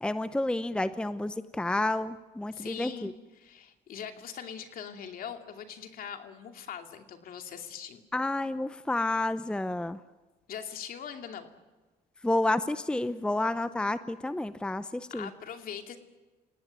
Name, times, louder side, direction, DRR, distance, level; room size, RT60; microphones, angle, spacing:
voice 1, 0.0-3.1 8.1-10.0 12.2-15.3, left 2 dB, 5° left, 12 dB, 0.7 m, -30 dB
voice 2, 2.5-8.0 10.5-11.5 15.1-16.0, left 8 dB, 60° left, 5 dB, 2.7 m, -41 dB
28.5 x 18.0 x 9.4 m, 1.2 s
cardioid pair, 110°, 17 cm